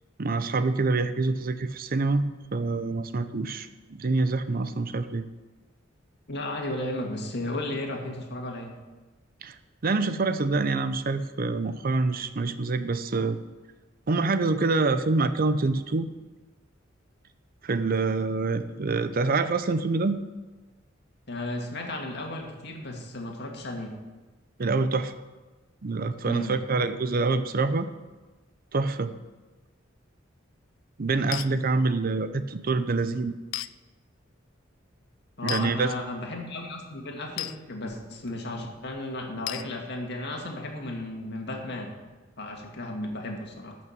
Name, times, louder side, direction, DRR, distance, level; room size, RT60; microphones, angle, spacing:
voice 1, 0.2-5.2 9.4-9.5 9.8-13.4 14.1-16.1 17.6-20.2 24.6-25.1 25.8-27.9 28.7-29.1 31.0-33.3 35.4-35.9, right 3 dB, 50° right, 11 dB, 0.6 m, -26 dB
voice 2, 6.3-8.8 21.3-24.0 26.2-26.6 35.4-42.0 42.4-43.8, left 1 dB, 60° left, 2 dB, 2.0 m, -34 dB
sound 1, 31.3-31.5 33.5-33.7 35.5-35.7 37.4-37.6 39.5-39.7, left 15 dB, 75° left, 0.4 m, -32 dB
12.0 x 6.2 x 7.4 m, 1.2 s
head